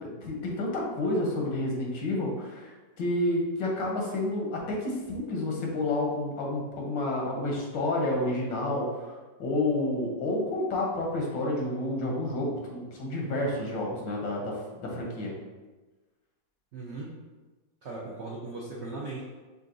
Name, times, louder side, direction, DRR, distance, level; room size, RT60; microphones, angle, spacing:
voice 1, 0.0-2.7 3.0-15.3, left 1 dB, 85° left, -2 dB, 1.7 m, -30 dB
voice 2, 16.7-17.1 17.8-19.2, right 3 dB, 70° right, -4 dB, 0.6 m, -38 dB
5.6 x 3.6 x 2.6 m, 1.2 s
omnidirectional pair, 2.0 m